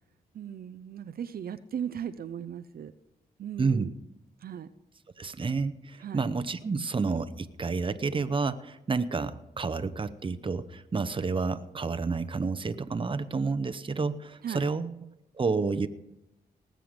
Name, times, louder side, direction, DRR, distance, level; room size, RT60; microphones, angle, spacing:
voice 1, 0.3-2.9 3.4-3.9 4.4-4.7 6.0-6.2 6.7-6.9 14.4-14.7, right 8 dB, 65° right, 11 dB, 0.6 m, -37 dB
voice 2, 3.6-3.9 5.2-14.9 15.3-15.9, right 4 dB, 30° right, 12 dB, 0.8 m, -30 dB
19.0 x 7.7 x 5.1 m, 0.91 s
cardioid pair, 85°, 17 cm